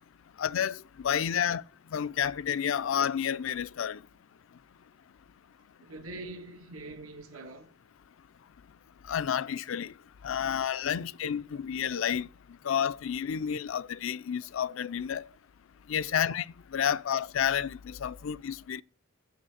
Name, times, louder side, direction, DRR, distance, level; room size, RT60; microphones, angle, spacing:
voice 1, 0.4-1.6 1.9-4.0 9.1-9.9 10.2-12.3 12.6-15.3 15.9-16.5 16.7-18.8, left 8 dB, 65° left, 0.4 m, -30 dB
voice 2, 5.8-7.7 16.1-16.2, right 2 dB, 90° right, 1.6 m, -44 dB
7.1 x 6.5 x 7.7 m
head